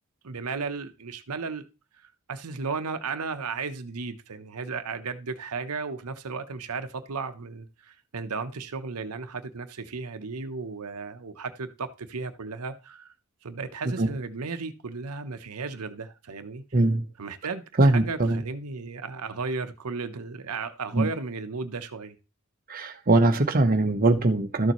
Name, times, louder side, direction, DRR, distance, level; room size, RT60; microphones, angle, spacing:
voice 1, 0.2-1.6 2.3-13.1 13.4-16.6 17.2-22.2, right 4 dB, 85° right, 0.9 m, -34 dB
voice 2, 16.7-17.1 17.8-18.4 20.9-21.1 22.7-24.7, right 2 dB, 40° right, 0.9 m, -21 dB
12.5 x 6.9 x 3.1 m
head